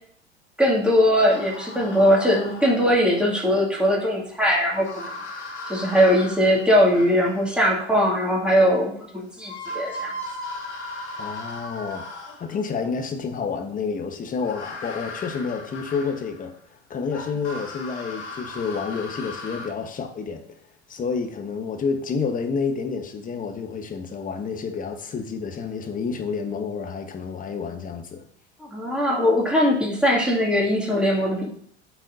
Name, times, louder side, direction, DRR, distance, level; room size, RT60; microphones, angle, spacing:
voice 1, 0.6-5.1 5.7-10.1 28.7-31.5, equal, 5° right, -3 dB, 2.3 m, -20 dB
sound 1, 1.3-3.1 4.7-7.7 9.0-9.1 9.4-12.7 14.4-16.5 17.1-19.7, left 2 dB, 85° left, 1.6 m, -37 dB
voice 2, 11.2-12.0 12.4-16.5 16.9-20.4 20.9-28.2, left 5 dB, 25° left, 5 dB, 1.1 m, -29 dB
12.0 x 4.1 x 2.7 m, 0.62 s
hypercardioid pair, 85°, 33 cm